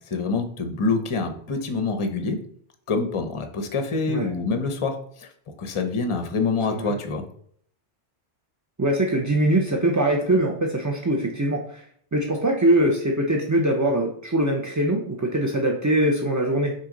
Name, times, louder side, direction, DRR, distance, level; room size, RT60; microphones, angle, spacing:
voice 1, 0.1-2.4 2.9-7.2, left 4 dB, 35° left, 6 dB, 0.6 m, -26 dB
voice 2, 8.8-11.8 12.1-16.7, right 1 dB, 25° right, 0 dB, 0.4 m, -22 dB
6.2 x 4.2 x 3.8 m, 0.63 s
omnidirectional pair, 1.2 m